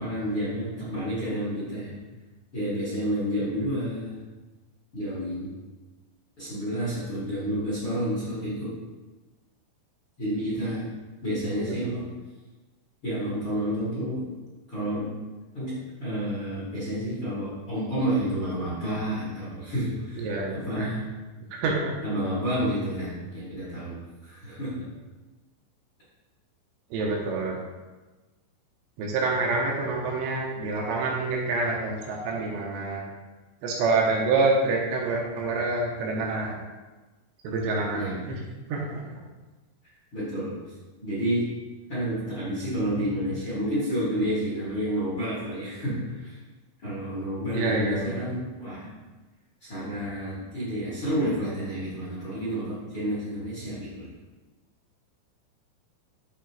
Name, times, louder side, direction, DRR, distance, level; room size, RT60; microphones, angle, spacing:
voice 1, 0.0-1.9 2.5-4.2 4.9-5.5 6.4-8.7 10.2-10.9 11.2-12.0 13.0-14.2 14.7-15.1 15.5-21.0 22.0-24.8 37.9-38.1 40.1-40.5 41.0-41.4 41.9-46.3 46.8-48.8 49.6-54.1, equal, 40° left, -10 dB, 1.9 m, -30 dB
voice 2, 11.6-11.9 20.2-20.9 21.5-21.9 26.9-27.6 29.0-33.0 33.6-36.6 37.4-38.4 38.7-39.2 47.5-48.2, right 3 dB, 75° right, -2 dB, 2.9 m, -27 dB
10.5 x 4.3 x 3.0 m, 1.2 s
omnidirectional pair, 5.6 m